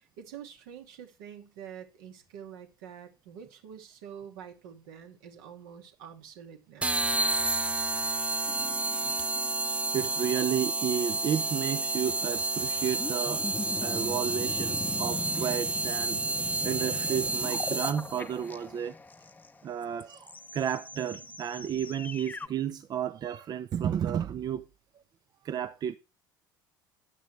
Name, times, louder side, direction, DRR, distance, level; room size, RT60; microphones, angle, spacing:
voice 1, 0.0-7.0, right 8 dB, 65° right, 2.3 m, -47 dB
sound 1, 6.8-18.2, right 2 dB, 10° right, 0.5 m, -30 dB
sound 2, 8.5-10.6 12.1-22.5, left 3 dB, 15° left, 0.9 m, -41 dB
voice 2, 9.9-13.5 13.8-18.9 19.6-24.7 25.4-26.0, right 9 dB, 40° right, 0.8 m, -32 dB
13.5 x 10.5 x 3.4 m
figure-of-eight pair, 70°, 11 cm